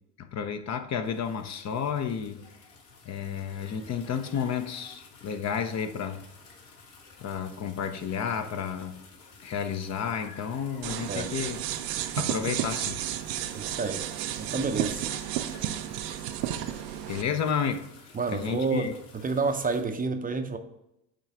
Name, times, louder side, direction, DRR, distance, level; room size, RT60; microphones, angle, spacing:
voice 1, 0.2-2.5 3.1-6.2 7.2-9.0 9.4-11.6 12.1-13.0 17.0-17.9 18.3-18.9, left 7 dB, 35° left, 0.7 m, -31 dB
sound 1, 1.0-19.8, left 4 dB, 65° left, 1.9 m, -52 dB
sound 2, 10.8-17.2, right 11 dB, 80° right, 0.7 m, -32 dB
voice 2, 13.5-14.1 14.4-15.1 18.1-20.6, right 4 dB, 15° right, 0.7 m, -29 dB
8.9 x 3.2 x 4.8 m
hypercardioid pair, 85°, 48 cm